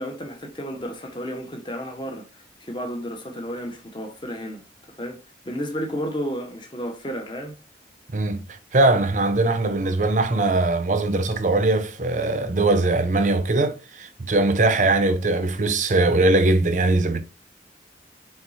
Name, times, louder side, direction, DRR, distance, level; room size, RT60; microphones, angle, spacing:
voice 1, 0.0-2.3 2.6-4.6 5.0-5.2 5.4-7.5, equal, 25° left, 0.9 m, -32 dB
voice 2, 8.7-17.2, right 2 dB, 45° right, 0.6 m, -21 dB
4.4 x 4.0 x 2.6 m
head